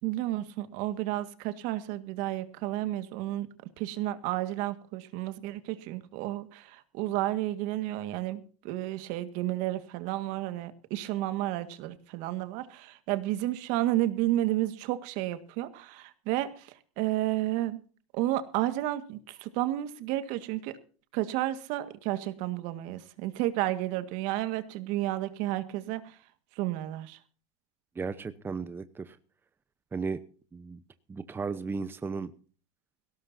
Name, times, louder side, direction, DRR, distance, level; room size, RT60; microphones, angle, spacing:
voice 1, 0.0-3.5 3.8-17.8 18.1-20.8 21.1-26.2 26.6-27.2, right 15 dB, 55° right, 11 dB, 1.8 m, -31 dB
voice 2, 28.0-29.2 29.9-30.2 30.5-30.8 31.1-32.3, right 4 dB, 15° right, 12 dB, 0.9 m, -35 dB
18.5 x 17.0 x 2.7 m, 0.40 s
supercardioid pair, 125°, 15 cm